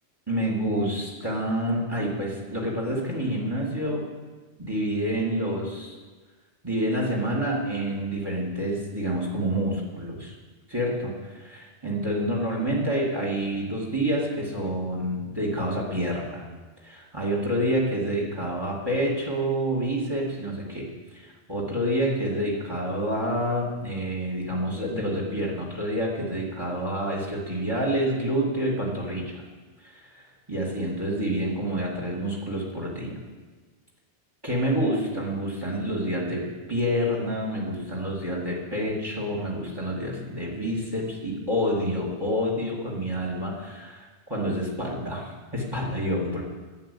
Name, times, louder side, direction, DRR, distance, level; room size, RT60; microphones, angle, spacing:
voice 1, 0.3-4.1 4.6-6.0 6.6-10.3 10.7-16.4 16.8-29.4 29.8-33.2 34.4-46.4, equal, 20° right, -3 dB, 2.7 m, -28 dB
11.0 x 9.6 x 8.7 m, 1.3 s
omnidirectional pair, 1.2 m